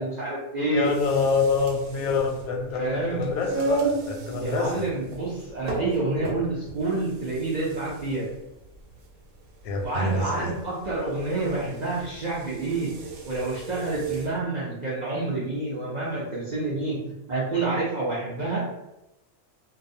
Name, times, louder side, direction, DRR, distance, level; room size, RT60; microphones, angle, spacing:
voice 1, 0.0-0.9 2.8-3.3 4.4-8.3 9.8-12.9 13.3-17.0 17.3-18.6, right 2 dB, 65° right, -7 dB, 0.4 m, -28 dB
voice 2, 0.7-4.9 9.6-10.6, left 4 dB, 90° left, 2 dB, 1.0 m, -26 dB
sound 1, 0.8-14.4, right 3 dB, 85° right, 1.1 m, -35 dB
2.3 x 2.2 x 2.6 m, 0.93 s
omnidirectional pair, 1.5 m